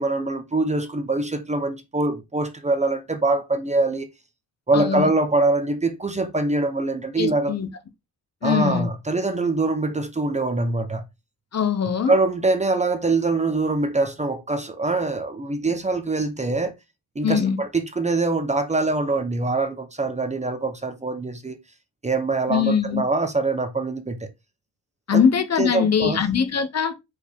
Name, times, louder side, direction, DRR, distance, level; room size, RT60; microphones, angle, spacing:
voice 1, 0.0-4.1 4.7-7.6 8.4-11.0 12.1-16.7 17.1-21.6 22.0-24.3 25.1-25.2 25.6-26.3, right 2 dB, 15° right, 0.9 m, -24 dB
voice 2, 4.7-5.1 7.2-7.7 8.4-8.9 11.5-12.2 17.2-17.6 22.5-23.0 25.1-26.9, left 7 dB, 40° left, 1.0 m, -22 dB
8.7 x 5.0 x 3.6 m
wide cardioid pair, 175°, 40 cm